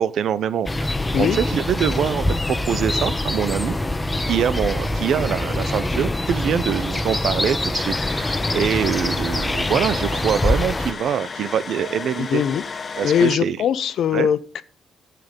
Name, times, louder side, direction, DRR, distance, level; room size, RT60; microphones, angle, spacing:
voice 1, 0.0-3.8 4.3-12.4 13.0-13.6 14.1-14.3, right 8 dB, 70° right, 0.7 m, -24 dB
sound 1, 0.7-10.9, left 1 dB, 15° left, 1.1 m, -24 dB
sound 2, 7.8-13.4, left 5 dB, 40° left, 1.0 m, -33 dB
voice 2, 12.3-12.6 13.0-14.6, left 9 dB, 70° left, 0.7 m, -21 dB
11.0 x 8.5 x 5.3 m
cardioid pair, 90°, 0 cm